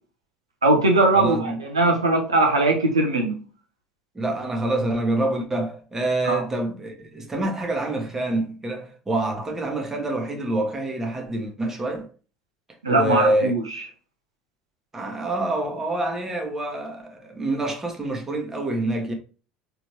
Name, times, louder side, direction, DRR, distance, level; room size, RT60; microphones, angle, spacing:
voice 1, 0.6-3.4 6.3-6.4 12.8-13.8, right 2 dB, 80° right, 0.8 m, -20 dB
voice 2, 1.1-1.6 4.1-12.1 12.9-13.5 14.9-19.1, right 1 dB, 15° right, 1.3 m, -26 dB
4.1 x 3.3 x 2.9 m
figure-of-eight pair, 65°, 3 cm